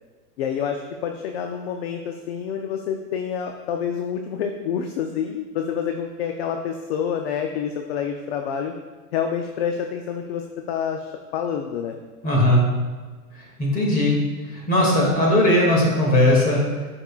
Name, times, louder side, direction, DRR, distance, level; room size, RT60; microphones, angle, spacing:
voice 1, 0.4-8.7 9.1-12.0, left 7 dB, 45° left, 5 dB, 0.5 m, -28 dB
voice 2, 12.2-12.6 13.3-14.2 14.4-16.6, left 1 dB, 20° left, -3 dB, 2.1 m, -18 dB
12.5 x 5.5 x 2.3 m, 1.4 s
hypercardioid pair, 145°, 48 cm